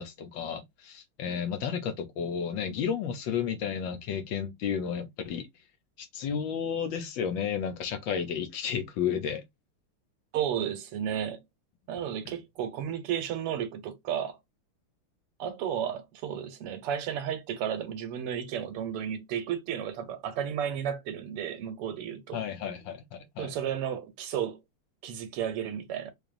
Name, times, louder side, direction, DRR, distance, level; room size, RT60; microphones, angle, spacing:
voice 1, 0.0-5.5 6.0-9.4 22.3-23.5, left 7 dB, 70° left, 1.3 m, -32 dB
voice 2, 10.3-11.4 11.9-14.4 15.4-22.4 23.4-24.6 25.0-26.1, right 9 dB, 85° right, 1.9 m, -33 dB
4.8 x 2.8 x 2.5 m
omnidirectional pair, 2.4 m